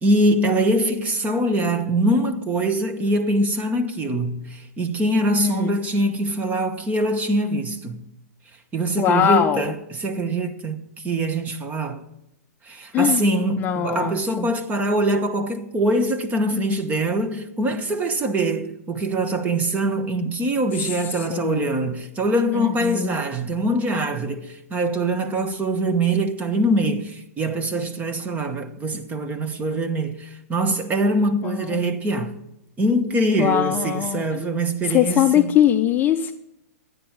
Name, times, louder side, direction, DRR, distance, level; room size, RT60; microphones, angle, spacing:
voice 1, 0.0-8.0 8.7-12.0 12.7-32.4 32.8-35.5, right 1 dB, 20° right, 1.2 m, -23 dB
voice 2, 5.4-5.8 9.0-9.6 12.9-13.3 13.6-14.5 20.7-21.7 22.5-23.2 31.4-31.8 33.4-34.5 34.9-36.3, left 10 dB, 20° left, 0.6 m, -22 dB
12.5 x 9.5 x 4.7 m
hypercardioid pair, 130°, 9 cm